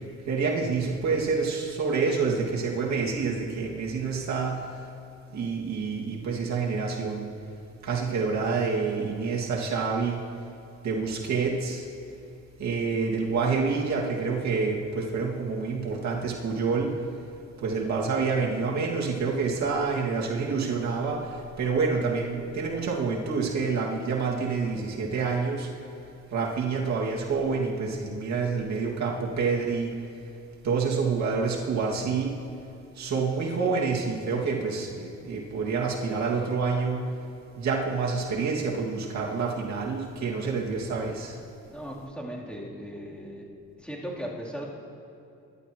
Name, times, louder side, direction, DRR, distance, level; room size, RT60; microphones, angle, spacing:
voice 1, 0.3-4.8 5.3-7.3 7.8-10.2 10.8-11.9 12.6-16.9 17.6-25.7 26.3-29.9 30.6-32.3 33.0-37.1 37.6-41.4, right 4 dB, 65° right, -2 dB, 2.3 m, -27 dB
voice 2, 41.7-43.4 43.8-44.6, equal, 5° left, -6 dB, 3.5 m, -37 dB
24.0 x 11.5 x 3.1 m, 2.7 s
cardioid pair, 90°, 30 cm